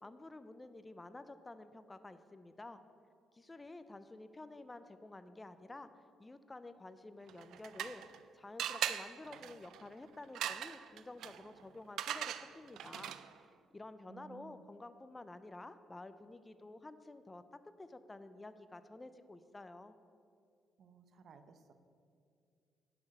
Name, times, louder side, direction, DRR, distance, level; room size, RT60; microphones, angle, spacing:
voice 1, 0.0-2.8 3.3-5.9 6.2-13.5 13.7-17.4 17.8-20.0, left 2 dB, 20° left, 12 dB, 0.5 m, -51 dB
sound 1, 7.3-8.2 8.6-13.4, right 10 dB, 80° right, 0.4 m, -41 dB
voice 2, 14.1-14.6 20.8-21.7, right 5 dB, 60° right, 9 dB, 0.8 m, -57 dB
10.5 x 6.0 x 6.5 m, 2.4 s
cardioid pair, 90°, 0 cm